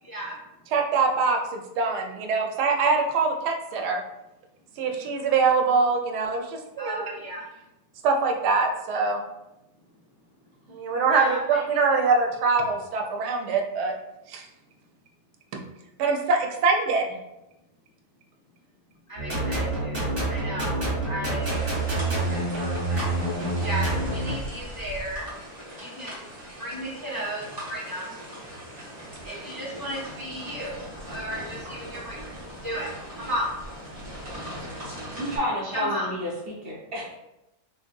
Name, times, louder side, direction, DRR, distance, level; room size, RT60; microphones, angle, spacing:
voice 1, 0.7-4.0 4.8-7.1 8.0-9.2 10.7-13.9 14.3-14.5 16.0-17.1, right 4 dB, 90° right, 2 dB, 1.2 m, -24 dB
voice 2, 6.8-7.4 11.1-12.0 19.1-20.8 21.0-21.8 22.3-23.0 23.6-25.2 25.8-26.1 26.6-27.4 27.7-28.0 29.2-30.7 31.1-32.3 32.6-32.9 33.2-33.5 35.6-36.1, equal, 15° left, -8 dB, 0.7 m, -34 dB
sound 1, 19.2-24.3, right 2 dB, 45° right, 1.7 m, -27 dB
sound 2, 21.4-35.4, equal, 30° right, 1.1 m, -40 dB
voice 3, 34.8-37.1, equal, 70° right, -5 dB, 0.5 m, -31 dB
3.9 x 2.6 x 2.2 m, 0.93 s
omnidirectional pair, 1.7 m